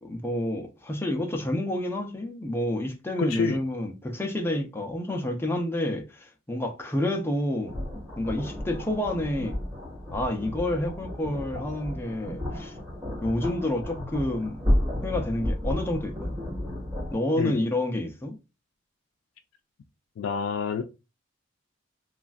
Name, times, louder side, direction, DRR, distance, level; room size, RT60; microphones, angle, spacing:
voice 1, 0.0-7.7 8.2-9.6 10.1-12.8 13.2-14.6 15.0-16.4 17.1-18.3, left 1 dB, 10° left, 0.5 m, -29 dB
voice 2, 3.2-3.6 17.4-17.6 20.2-20.8, left 5 dB, 90° left, 0.3 m, -27 dB
sound 1, 7.7-17.2, left 1 dB, 25° right, 1.7 m, -32 dB
3.1 x 2.4 x 2.4 m
head